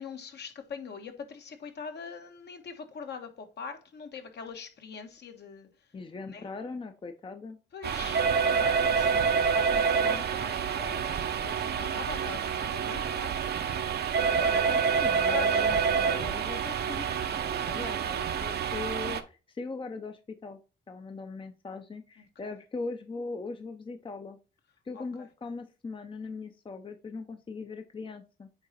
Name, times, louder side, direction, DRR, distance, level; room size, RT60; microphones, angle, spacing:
voice 1, 0.0-5.7 6.3-6.5 7.7-13.3 14.1-15.7 22.2-22.5 24.9-25.3, left 6 dB, 60° left, 1.4 m, -42 dB
voice 2, 5.9-7.6 14.7-20.6 20.9-24.4 24.9-28.5, left 3 dB, 25° left, 0.7 m, -40 dB
sound 1, 7.8-19.2, right 6 dB, 55° right, 0.8 m, -27 dB
8.7 x 3.0 x 4.2 m
cardioid pair, 90°, 20 cm